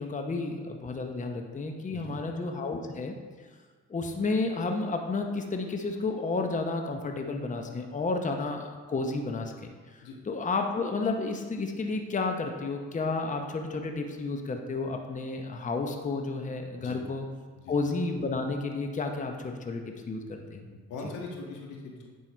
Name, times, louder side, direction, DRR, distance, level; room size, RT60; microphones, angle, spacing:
voice 1, 0.0-3.1 3.9-9.5 9.9-10.0 10.3-17.3 17.7-20.7, left 3 dB, 25° left, 4 dB, 0.8 m, -31 dB
voice 2, 20.7-22.1, left 3 dB, 85° left, -1 dB, 1.6 m, -41 dB
9.1 x 5.4 x 4.5 m, 1.5 s
cardioid pair, 90°, 30 cm